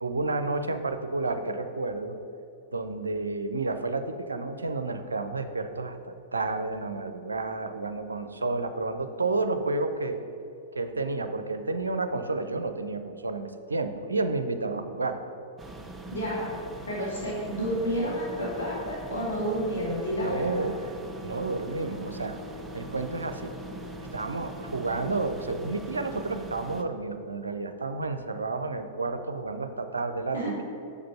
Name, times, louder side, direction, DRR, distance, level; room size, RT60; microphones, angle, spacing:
voice 1, 0.0-2.2 2.7-10.2 10.7-15.2 20.2-20.8 21.2-22.4 22.7-23.5 24.1-30.6, right 3 dB, 75° right, 8 dB, 0.5 m, -31 dB
sound 1, 15.6-26.8, right 2 dB, 10° right, 0.5 m, -42 dB
voice 2, 16.1-16.5 16.9-20.7 30.3-30.6, equal, 75° left, -6 dB, 1.8 m, -30 dB
sound 2, 20.4-27.9, left 3 dB, 55° right, 0.8 m, -48 dB
6.5 x 5.1 x 5.4 m, 2.7 s
figure-of-eight pair, 100°, 0 cm